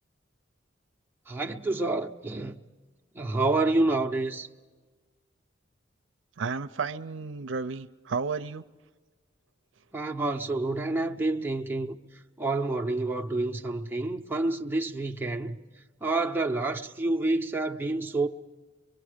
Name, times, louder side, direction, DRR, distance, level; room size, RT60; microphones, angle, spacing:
voice 1, 1.3-2.6 3.1-4.5 9.9-11.9 12.4-15.6 16.0-18.3, right 2 dB, 10° right, 0.7 m, -28 dB
voice 2, 6.4-8.6, right 5 dB, 75° right, 0.6 m, -32 dB
24.0 x 23.5 x 5.0 m
head